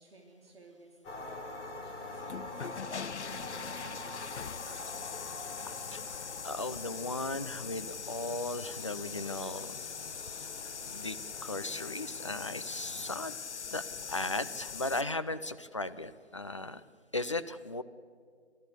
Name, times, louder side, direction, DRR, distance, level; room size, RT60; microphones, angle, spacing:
voice 1, 0.0-2.5 2.9-5.6, right 2 dB, 55° right, 0 dB, 3.4 m, -56 dB
sound 1, 1.0-13.2, left 2 dB, 5° left, 1.1 m, -46 dB
sound 2, 2.1-15.0, left 6 dB, 75° left, 0.6 m, -42 dB
voice 2, 5.6-9.8 10.3-10.4 10.9-13.3 13.7-16.8 17.1-17.8, left 2 dB, 25° left, 11 dB, 0.6 m, -37 dB
28.5 x 14.0 x 8.3 m, 2.2 s
figure-of-eight pair, 155°, 34 cm